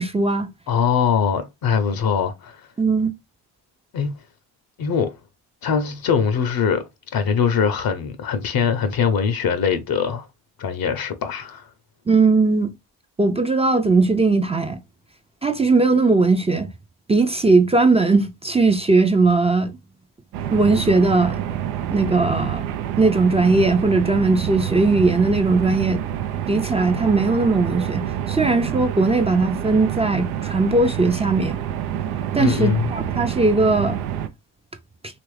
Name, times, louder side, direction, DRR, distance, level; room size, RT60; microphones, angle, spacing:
voice 1, 0.0-0.5 2.8-3.1 12.1-12.7 13.2-14.8 15.4-16.7 17.1-19.8 20.5-21.4 21.9-22.6 23.0-26.0 26.5-31.6 32.3-34.0, right 3 dB, 15° right, 0.4 m, -19 dB
voice 2, 0.7-2.6 3.9-4.1 4.8-5.1 5.6-6.8 7.1-10.3 10.6-11.7 32.4-32.9, left 6 dB, 50° left, 0.6 m, -22 dB
sound 1, 20.3-34.3, right 10 dB, 85° right, 0.5 m, -27 dB
3.0 x 2.5 x 3.2 m
supercardioid pair, 60°, 45 cm